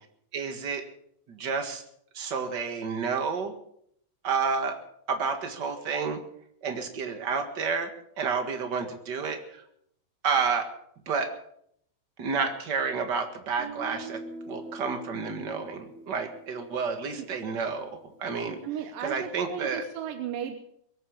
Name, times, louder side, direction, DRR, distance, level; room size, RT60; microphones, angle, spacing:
voice 1, 0.3-0.8 1.3-1.8 2.1-3.5 4.2-4.8 5.1-6.2 6.6-7.9 8.2-9.6 10.2-10.7 11.0-11.3 12.2-18.6 19.0-19.8, right 5 dB, 40° right, 6 dB, 1.7 m, -30 dB
Guitar, 13.6-17.5, right 3 dB, 90° right, 5.0 m, -43 dB
voice 2, 18.6-20.6, right 9 dB, 70° right, 7 dB, 2.5 m, -35 dB
22.5 x 9.0 x 7.2 m, 0.70 s
omnidirectional pair, 4.2 m